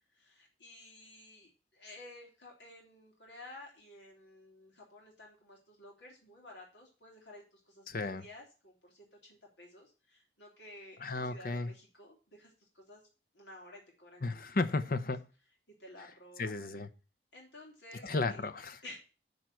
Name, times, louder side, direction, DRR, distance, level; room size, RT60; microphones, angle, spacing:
voice 1, 0.1-13.0 13.3-14.4 15.8-16.6 17.3-18.4 18.8-19.0, left 1 dB, 90° left, 3.1 m, -53 dB
voice 2, 7.9-8.2 11.0-11.7 14.2-15.3 16.4-16.9 18.0-18.8, left 3 dB, 55° left, 0.8 m, -34 dB
9.5 x 4.6 x 7.6 m
head